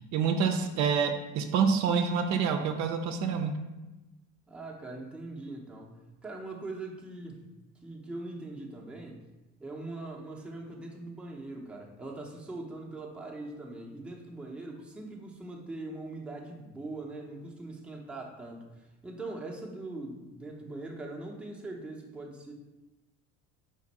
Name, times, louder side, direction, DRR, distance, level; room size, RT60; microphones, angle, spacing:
voice 1, 0.1-3.5, right 6 dB, 60° right, 5 dB, 0.5 m, -27 dB
voice 2, 4.5-5.9 6.2-7.4 7.8-9.2 9.6-22.5, right 2 dB, 5° right, -2 dB, 0.6 m, -41 dB
5.2 x 2.5 x 4.0 m, 1.1 s
cardioid pair, 115°, 32 cm